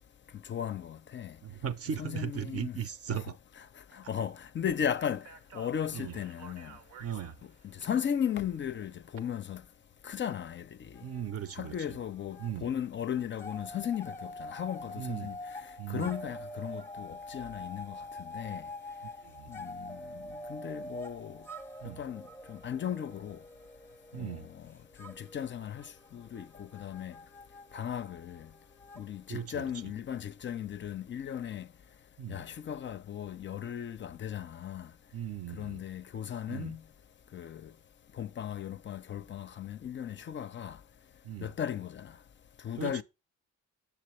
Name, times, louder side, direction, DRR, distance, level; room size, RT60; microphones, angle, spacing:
voice 1, 0.5-1.4 2.0-2.8 3.1-3.2 3.9-5.3 5.5-6.7 7.8-9.6 10.0-11.0 11.5-15.3 15.9-18.6 19.5-20.2 20.5-21.4 22.0-22.2 22.5-23.4 24.1-24.6 25.0-27.1 27.7-28.5 29.0-31.7 32.3-34.9 35.6-36.8 37.3-37.7 38.2-40.8 41.4-42.1 42.6-43.0, left 9 dB, 40° left, 0.4 m, -36 dB
voice 2, 1.4-3.4 4.0-4.1 5.9-6.2 7.0-7.4 11.0-12.0 12.4-12.7 15.0-15.3 15.8-16.1 19.2-19.5 21.8-22.0 24.1-24.5 29.3-29.7 32.2-32.4 35.1-35.8 36.5-36.8 41.2-41.5 42.8-43.0, right 9 dB, 50° right, 0.6 m, -38 dB
Speech, 4.6-9.2, right 6 dB, 85° right, 0.9 m, -53 dB
sound 1, 10.9-12.6 12.8-29.9, left 1 dB, 10° left, 0.7 m, -46 dB
7.1 x 6.7 x 3.0 m
cardioid pair, 90°, 30 cm